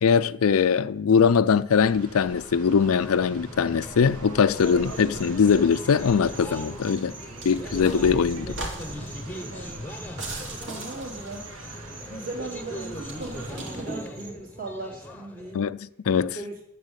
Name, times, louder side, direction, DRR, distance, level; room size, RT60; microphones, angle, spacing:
voice 1, 0.0-7.1 7.4-8.6 15.5-16.4, left 6 dB, 80° left, 0.4 m, -21 dB
sound 1, 1.7-13.8, right 1 dB, 90° right, 1.7 m, -43 dB
sound 2, 2.8-15.5, equal, 5° left, 1.0 m, -40 dB
sound 3, 4.5-14.3, right 2 dB, 55° right, 2.7 m, -40 dB
voice 2, 10.6-11.5 12.1-15.7 16.3-16.5, right 2 dB, 40° right, 3.3 m, -38 dB
11.5 x 7.7 x 8.1 m
head